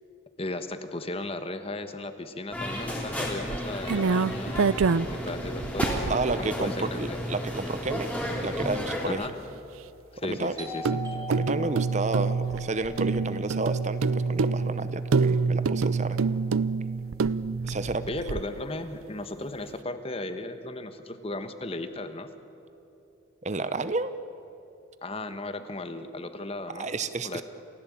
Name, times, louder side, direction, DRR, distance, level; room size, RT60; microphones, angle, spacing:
voice 1, 0.4-4.7 5.1-7.2 9.0-9.4 10.1-11.3 18.1-22.3 25.0-27.0 27.2-27.4, left 2 dB, 30° left, 9 dB, 1.2 m, -36 dB
sound 1, 2.5-9.1, equal, 5° left, 3.3 m, -33 dB
sound 2, 3.5-6.6 7.2-7.3 7.5-7.6 10.8-18.6, right 4 dB, 90° right, 0.5 m, -27 dB
voice 2, 6.1-9.3 10.2-10.6 11.3-16.2 17.6-18.0 23.4-24.1 26.7-27.4, right 3 dB, 35° right, 12 dB, 0.7 m, -31 dB
Doorbell, 10.6-16.0, left 1 dB, 20° right, 3.8 m, -43 dB
29.5 x 16.0 x 8.7 m, 3.0 s
head